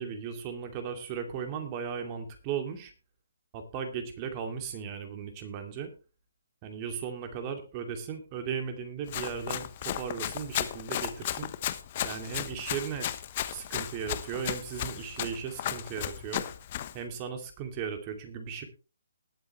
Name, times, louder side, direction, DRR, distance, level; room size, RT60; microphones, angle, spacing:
voice 1, 0.0-2.9 3.5-5.9 6.6-11.5 12.0-13.1 13.5-16.5 16.9-18.6, right 7 dB, 25° right, 5 dB, 2.5 m, -36 dB
Run, 9.1-17.0, left 12 dB, 35° left, 1.0 m, -35 dB
19.5 x 8.1 x 3.2 m, 0.33 s
hypercardioid pair, 150°, 0 cm